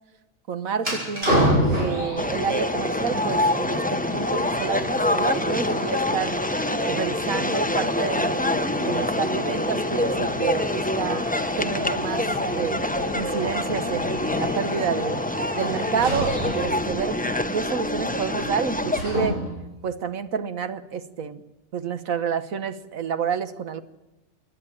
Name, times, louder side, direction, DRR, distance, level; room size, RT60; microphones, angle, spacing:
voice 1, 0.5-6.4 6.8-12.3 12.5-12.9 13.1-15.2 15.5-17.2 17.5-19.4 19.8-21.4 21.7-23.8, right 6 dB, 75° right, 10 dB, 1.6 m, -29 dB
sound 1, 0.8-19.7, equal, 45° right, 6.9 m, -31 dB
sound 2, 2.2-19.0, left 1 dB, 10° left, 0.5 m, -26 dB
27.0 x 11.0 x 10.0 m, 1.0 s
omnidirectional pair, 1.5 m